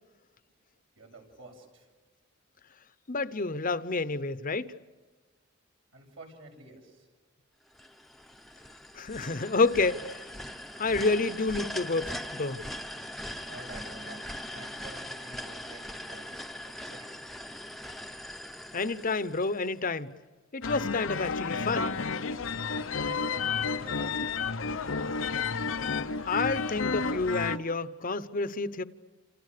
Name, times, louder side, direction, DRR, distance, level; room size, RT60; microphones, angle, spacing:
voice 1, 1.0-1.9 5.9-7.0 13.5-16.2 16.8-17.2 23.0-24.4, right 2 dB, 75° right, 7.6 m, -49 dB
voice 2, 3.1-4.7 8.9-10.2 10.8-12.6 18.7-20.1 20.5-22.0 26.3-28.8, left 3 dB, 45° left, 0.9 m, -29 dB
sound 1, 7.7-19.8, left 1 dB, ahead, 0.9 m, -41 dB
sound 2, 20.6-27.6, left 4 dB, 80° left, 0.9 m, -31 dB
29.0 x 28.0 x 6.8 m
head